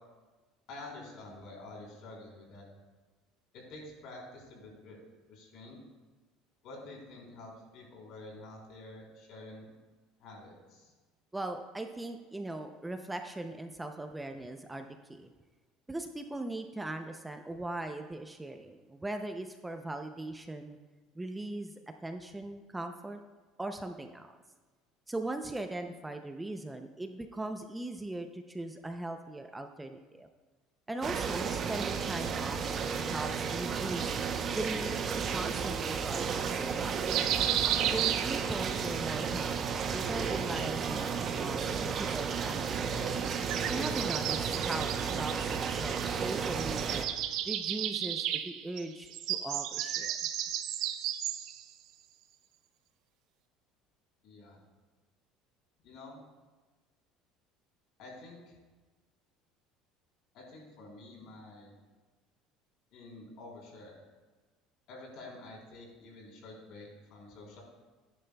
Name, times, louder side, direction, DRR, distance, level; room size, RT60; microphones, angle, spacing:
voice 1, 0.7-2.7 3.5-5.0 5.3-5.8 6.6-9.6 10.2-10.9 54.2-54.6 55.8-56.2 58.0-58.6 60.3-61.7 62.9-64.0 64.9-67.6, left 2 dB, 60° left, -2 dB, 3.6 m, -48 dB
voice 2, 11.3-15.3 15.9-20.8 21.2-21.7 22.0-23.2 23.6-24.3 25.1-30.3 30.9-34.1 34.5-37.1 37.9-43.2 43.6-47.1 47.4-50.1, right 2 dB, 10° right, 6 dB, 0.5 m, -39 dB
sound 1, 31.0-47.1, right 6 dB, 35° right, 0.8 m, -33 dB
sound 2, 37.1-38.8 40.2-41.3 43.2-46.2 46.5-51.6, right 11 dB, 65° right, 0.7 m, -34 dB
16.5 x 10.0 x 2.3 m, 1.3 s
cardioid pair, 135°, 0 cm